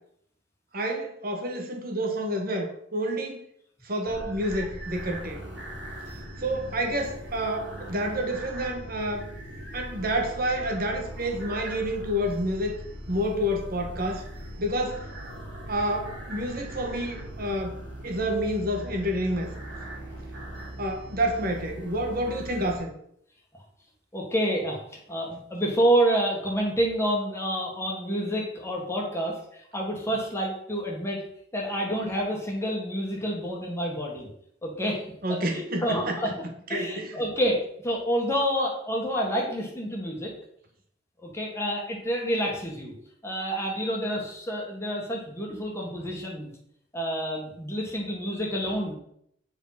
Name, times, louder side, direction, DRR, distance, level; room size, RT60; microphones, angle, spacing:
voice 1, 0.7-3.4 3.8-5.4 6.4-9.3 9.7-12.8 13.1-14.2 14.6-15.1 15.7-19.6 20.8-22.9 35.2-36.3 36.7-37.1, equal, 50° right, 3 dB, 1.7 m, -29 dB
sound 1, 4.1-22.8, right 1 dB, 85° right, 4.2 m, -40 dB
voice 2, 24.1-31.2 31.5-34.3 34.6-35.0 35.3-36.3 36.7-40.3 41.2-42.9 43.2-46.5 46.9-48.9, equal, 15° left, -2 dB, 1.9 m, -28 dB
9.0 x 5.2 x 5.9 m, 0.69 s
head